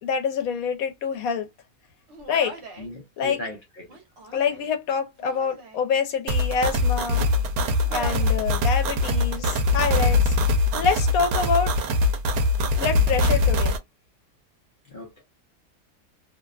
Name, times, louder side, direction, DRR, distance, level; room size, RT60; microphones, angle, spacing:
voice 1, 0.0-1.5 2.3-2.6 3.2-3.4 4.3-7.3 7.9-10.4 10.7-11.7 12.8-13.8, left 6 dB, 80° left, 1.1 m, -26 dB
Human voice, 2.1-2.9 3.8-4.7 5.2-5.8 6.5-7.5 7.8-8.4 8.8-9.5, right 1 dB, 55° right, 1.1 m, -42 dB
voice 2, 2.8-3.6 14.9-15.2, left 2 dB, 45° left, 0.7 m, -37 dB
sound 1, 6.3-13.8, left 2 dB, 90° right, 1.0 m, -22 dB
2.8 x 2.2 x 2.3 m
omnidirectional pair, 1.5 m